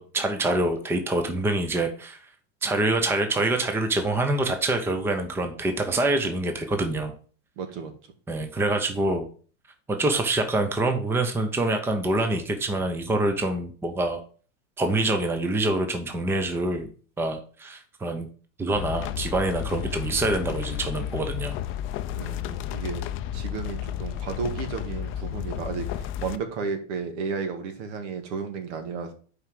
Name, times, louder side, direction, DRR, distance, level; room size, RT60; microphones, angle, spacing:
voice 1, 0.0-2.3 2.6-7.1 8.3-9.3 9.9-14.2 14.8-16.9 17.2-18.3 18.6-21.5, right 2 dB, 5° right, 6 dB, 0.7 m, -26 dB
voice 2, 7.6-7.9 22.1-23.1 23.3-29.1, right 5 dB, 70° right, 7 dB, 1.8 m, -33 dB
sound 1, 18.7-26.4, left 11 dB, 35° left, 0.5 m, -32 dB
5.5 x 4.8 x 5.9 m, 0.41 s
supercardioid pair, 135°, 37 cm